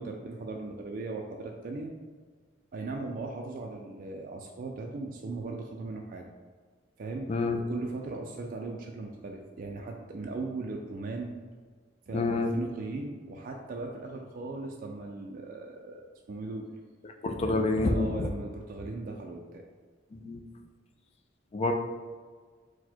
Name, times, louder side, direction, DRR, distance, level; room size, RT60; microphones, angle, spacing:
voice 1, 0.0-1.9 2.7-6.2 7.0-11.3 12.1-16.7 17.4-19.6, right 3 dB, 45° right, 1 dB, 0.3 m, -38 dB
voice 2, 7.3-7.6 12.1-12.5 17.0-18.3 20.1-20.4 21.5-21.7, left 2 dB, 35° left, 5 dB, 0.3 m, -28 dB
4.1 x 2.1 x 4.3 m, 1.5 s
head